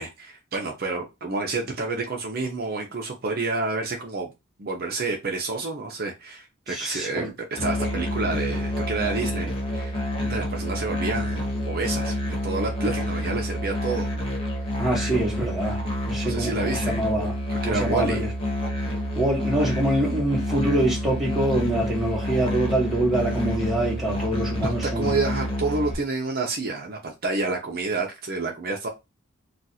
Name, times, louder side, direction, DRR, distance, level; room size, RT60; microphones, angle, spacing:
voice 1, 0.0-4.3 4.6-7.3 7.6-14.1 16.2-17.0 17.5-18.3 18.8-19.0 24.6-28.9, right 3 dB, 45° right, 0.6 m, -29 dB
voice 2, 6.7-7.3 14.8-15.8 16.1-17.4 17.6-18.3 19.1-25.1, right 1 dB, ahead, 1.0 m, -25 dB
Musical instrument, 7.6-25.9, left 1 dB, 25° left, 0.7 m, -28 dB
2.5 x 2.4 x 4.1 m
head